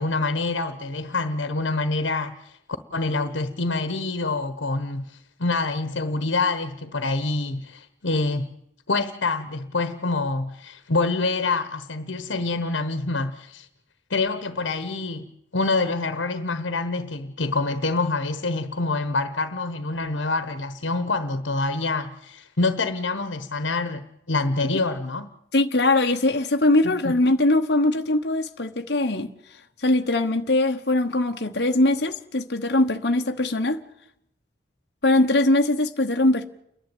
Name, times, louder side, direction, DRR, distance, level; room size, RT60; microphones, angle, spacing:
voice 1, 0.0-2.5 2.9-8.5 8.9-13.7 14.1-15.3 15.5-25.3 26.8-27.1, left 3 dB, 90° left, 1.2 m, -26 dB
voice 2, 25.5-29.3 29.8-33.8 35.0-36.5, left 2 dB, 60° left, 1.1 m, -21 dB
29.5 x 11.0 x 9.1 m
head